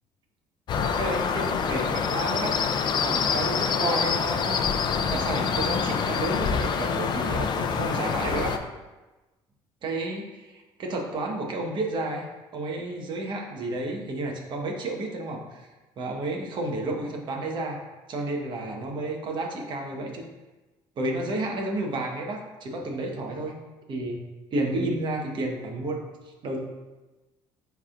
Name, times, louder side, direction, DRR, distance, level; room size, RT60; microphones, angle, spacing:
sound 1, 0.7-8.6, left 6 dB, 45° left, 0.5 m, -26 dB
voice 1, 0.8-2.6 3.0-4.7 5.1-8.5 9.8-15.7 16.0-17.8 18.1-20.2 21.0-23.6 23.9-24.2 24.5-26.0 26.4-26.6, right 2 dB, 50° right, 1 dB, 1.3 m, -31 dB
10.5 x 3.6 x 2.5 m, 1.1 s
cardioid pair, 110°, 10 cm